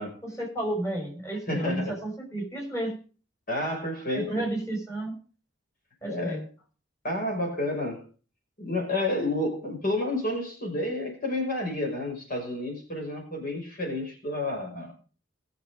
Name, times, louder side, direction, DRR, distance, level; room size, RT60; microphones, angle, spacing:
voice 1, 0.2-3.0 4.1-5.2 6.0-6.5, right 1 dB, 15° left, 5.6 m, -32 dB
voice 2, 1.5-2.0 3.5-4.4 6.1-6.4 7.0-8.1 8.6-14.9, left 1 dB, 50° left, 5.6 m, -30 dB
21.0 x 7.0 x 5.1 m
head